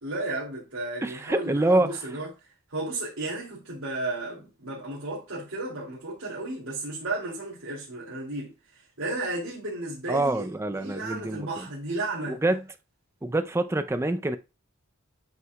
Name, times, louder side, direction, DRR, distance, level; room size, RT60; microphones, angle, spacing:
voice 1, 0.0-2.3 2.7-10.4 10.7-12.4, right 2 dB, 75° right, 2.5 m, -33 dB
voice 2, 1.0-2.0 10.1-11.6 12.3-12.6 13.2-14.4, right 2 dB, 15° right, 0.4 m, -26 dB
9.4 x 5.6 x 2.2 m
head